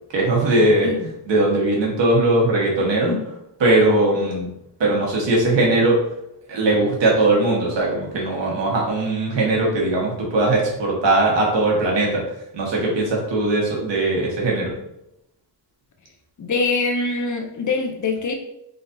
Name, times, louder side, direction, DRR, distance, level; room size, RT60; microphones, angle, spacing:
voice 1, 0.1-0.9 1.3-3.1 3.6-4.5 4.8-6.0 6.5-12.2 12.5-14.7, right 2 dB, 80° right, -3 dB, 1.3 m, -19 dB
voice 2, 2.8-3.3 16.4-18.3, left 3 dB, 45° left, 4 dB, 0.5 m, -24 dB
3.9 x 3.2 x 2.6 m, 0.80 s
wide cardioid pair, 130°, 43 cm